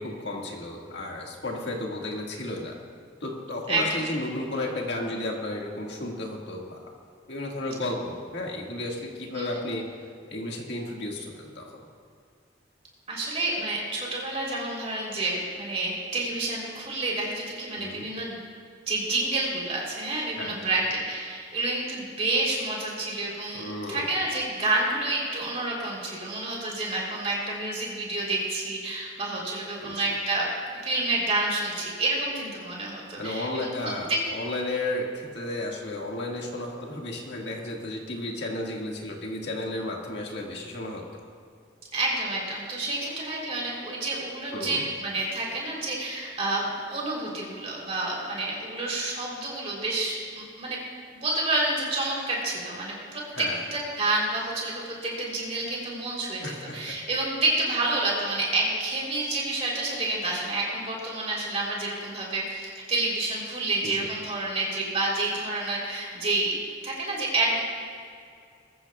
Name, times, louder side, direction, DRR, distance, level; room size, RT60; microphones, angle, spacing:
voice 1, 0.0-2.8 3.2-6.8 7.3-9.8 10.3-11.8 17.8-18.1 20.4-20.7 23.5-24.0 29.8-29.9 33.2-41.0 44.5-44.8 53.4-53.6 56.4-56.9 63.8-64.1, left 1 dB, 60° left, -1 dB, 1.9 m, -33 dB
voice 2, 3.7-4.1 9.4-9.6 13.1-18.4 18.9-30.5 30.8-34.2 41.9-50.8 51.1-66.6 66.8-67.6, right 2 dB, 30° right, -3 dB, 3.4 m, -29 dB
21.0 x 14.0 x 2.4 m, 2.3 s
head